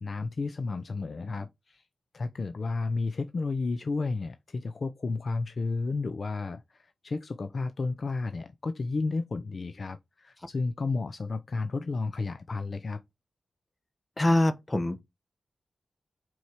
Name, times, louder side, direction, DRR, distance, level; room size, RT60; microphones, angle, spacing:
voice 1, 0.0-1.8 2.1-13.0, left 3 dB, 50° left, 0.5 m, -32 dB
voice 2, 14.2-15.0, left 1 dB, 25° left, 1.0 m, -24 dB
4.6 x 4.1 x 4.9 m
wide cardioid pair, 90°, 0 cm